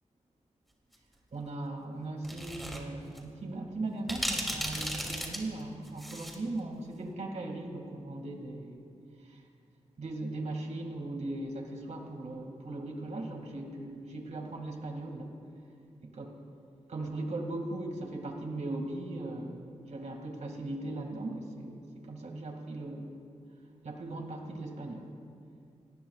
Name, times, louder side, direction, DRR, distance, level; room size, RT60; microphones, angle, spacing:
voice 1, 1.3-8.8 9.2-9.4 10.0-15.4 16.0-16.3 16.9-23.2 23.8-25.1, right 2 dB, 70° right, 2 dB, 2.3 m, -38 dB
sound 1, 2.2-2.8 3.1-3.2 4.1-6.4, equal, ahead, 2.9 m, -35 dB
28.0 x 19.0 x 2.4 m, 2.4 s
wide cardioid pair, 80°, 12 cm